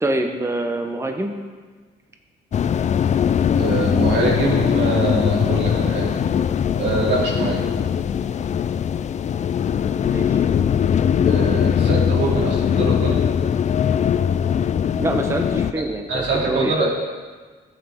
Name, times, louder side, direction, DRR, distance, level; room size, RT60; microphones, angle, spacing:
voice 1, 0.0-1.3 10.0-10.4 15.0-16.9, right 1 dB, 15° right, 4 dB, 0.8 m, -25 dB
sound 1, 2.5-15.7, left 8 dB, 40° left, 0.4 m, -20 dB
voice 2, 3.5-6.1 6.7-7.6 11.2-13.2 16.1-16.9, right 3 dB, 80° right, -3 dB, 2.6 m, -24 dB
13.5 x 8.2 x 3.5 m, 1.5 s
cardioid pair, 100°, 18 cm